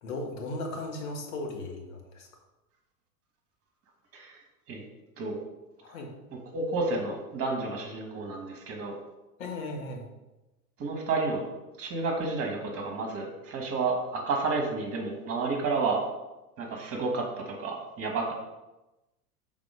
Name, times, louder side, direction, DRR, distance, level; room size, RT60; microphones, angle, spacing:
voice 1, 0.0-2.3 5.8-6.1 9.4-10.1, left 2 dB, 60° left, 2 dB, 1.5 m, -36 dB
voice 2, 6.3-9.0 10.8-11.4 11.8-16.0 16.6-18.3, right 3 dB, 30° right, 1 dB, 1.5 m, -31 dB
5.9 x 4.0 x 5.0 m, 1.0 s
figure-of-eight pair, 90°, 47 cm